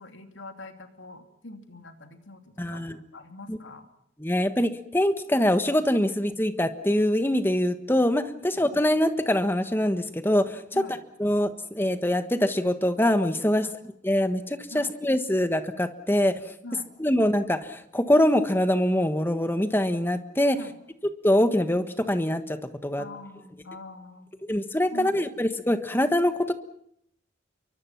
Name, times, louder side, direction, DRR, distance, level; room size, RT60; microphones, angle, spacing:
voice 1, 0.0-3.9 8.5-8.6 10.7-11.0 13.5-13.8 14.7-14.9 16.6-16.9 20.5-20.8 23.0-24.3 24.9-25.5, left 2 dB, 85° left, 6 dB, 3.0 m, -44 dB
voice 2, 2.6-3.0 3.5-3.6 4.2-10.8 11.2-13.7 14.0-16.3 17.0-20.6 21.2-23.0 24.5-26.5, left 1 dB, 10° left, 9 dB, 1.4 m, -24 dB
28.5 x 23.5 x 5.9 m, 0.70 s
head